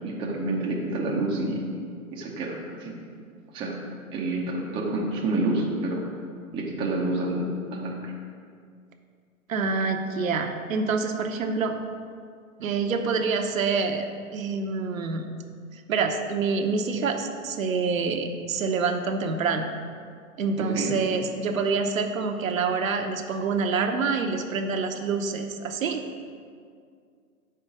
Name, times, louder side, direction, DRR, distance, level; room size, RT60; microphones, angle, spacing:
voice 1, 0.0-1.7 2.1-2.9 3.5-3.8 4.1-6.0 6.5-8.1 20.7-20.9, right 2 dB, 10° right, -2 dB, 0.5 m, -28 dB
voice 2, 9.5-11.7 12.6-15.3 15.9-19.7 20.4-26.0, right 4 dB, 70° right, 5 dB, 0.7 m, -26 dB
5.6 x 4.4 x 6.0 m, 2.2 s
figure-of-eight pair, 115°, 43 cm